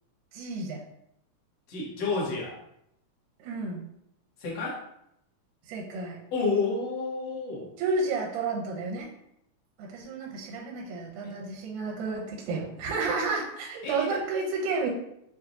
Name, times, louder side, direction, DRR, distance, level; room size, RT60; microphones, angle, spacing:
voice 1, 0.3-0.8 3.4-3.8 5.7-6.2 7.8-9.1 9.8-14.9, right 3 dB, 80° right, -2 dB, 2.0 m, -31 dB
voice 2, 1.7-2.6 4.4-4.8 6.3-7.7 11.2-11.3 13.0-13.1 13.8-14.2, left 4 dB, 60° left, -4 dB, 1.9 m, -30 dB
6.0 x 2.3 x 2.6 m, 0.77 s
omnidirectional pair, 3.7 m